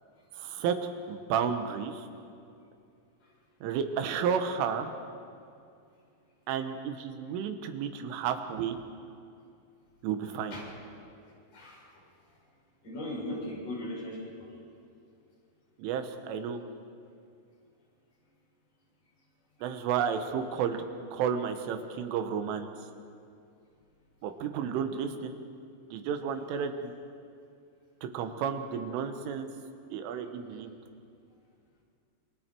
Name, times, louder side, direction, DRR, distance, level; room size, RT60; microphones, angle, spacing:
voice 1, 0.4-0.8 1.1-2.1 3.6-4.9 6.5-8.8 10.0-10.6 15.8-16.6 19.6-20.8 21.1-22.7 24.2-25.4 25.9-26.9 28.1-29.5 29.9-30.7, right 7 dB, 90° right, 7 dB, 3.8 m, -32 dB
voice 2, 11.5-11.9 12.8-14.5, left 1 dB, 40° left, -4 dB, 7.2 m, -38 dB
27.0 x 23.0 x 4.6 m, 2.4 s
omnidirectional pair, 5.5 m